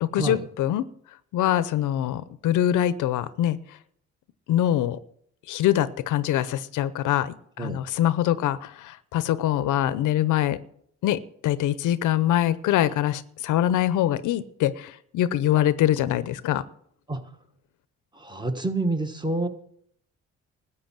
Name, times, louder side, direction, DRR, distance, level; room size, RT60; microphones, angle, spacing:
voice 1, 0.0-0.9 1.3-3.6 4.5-5.0 5.5-10.6 11.0-16.6, left 12 dB, 85° left, 16 dB, 0.8 m, -24 dB
voice 2, 18.1-19.5, right 2 dB, 15° right, 7 dB, 1.5 m, -28 dB
13.5 x 8.3 x 7.4 m, 0.67 s
cardioid pair, 90°, 30 cm